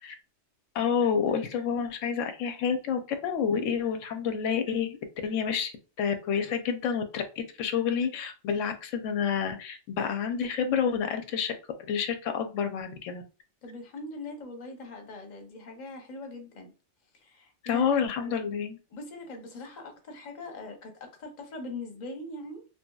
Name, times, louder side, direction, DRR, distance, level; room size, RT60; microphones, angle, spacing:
voice 1, 0.7-5.7 6.0-11.5 11.9-13.2 17.6-18.8, left 7 dB, 90° left, 0.9 m, -29 dB
voice 2, 13.6-16.7 17.1-17.9 18.2-18.5 18.9-22.7, left 2 dB, 45° left, 0.7 m, -41 dB
2.9 x 2.8 x 2.2 m
omnidirectional pair, 1.2 m